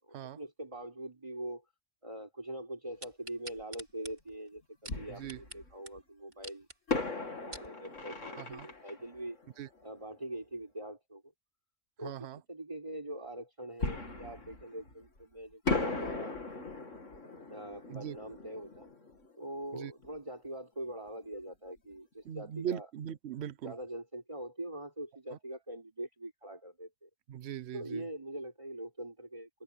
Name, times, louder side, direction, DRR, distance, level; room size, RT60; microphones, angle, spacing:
voice 1, 0.0-1.6 2.0-6.7 7.1-9.4 9.8-11.3 12.0-16.3 17.5-18.9 19.4-22.9 23.6-27.1 27.7-29.5, right 1 dB, 25° right, 4.7 m, -43 dB
sound 1, 3.0-5.6 5.9-6.0 6.3-6.8 7.2-7.7 8.3-8.4, right 2 dB, 45° right, 4.3 m, -47 dB
Fireworks, 3.6-3.7 4.9-6.0 6.9-10.4 13.8-15.2 15.7-20.2 20.5-20.6 21.1-21.3, left 3 dB, 70° left, 3.0 m, -38 dB
voice 2, 12.0-12.4 17.9-18.2 19.7-19.9 22.2-23.7 25.3-25.4 27.3-28.0, right 10 dB, 60° right, 0.9 m, -40 dB
omnidirectional pair, 1.4 m